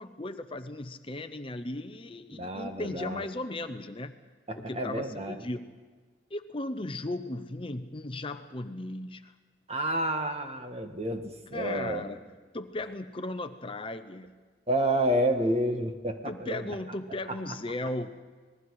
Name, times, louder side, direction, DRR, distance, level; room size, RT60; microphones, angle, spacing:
voice 1, 0.0-4.1 4.5-5.7 6.3-9.3 11.5-12.2 12.5-14.4 16.3-18.1, left 2 dB, 30° left, 9 dB, 0.8 m, -36 dB
voice 2, 2.3-3.3 4.5-5.4 9.7-12.1 14.7-16.7 17.3-17.4, right 1 dB, 35° right, 5 dB, 1.6 m, -30 dB
27.0 x 20.0 x 4.8 m, 1.4 s
head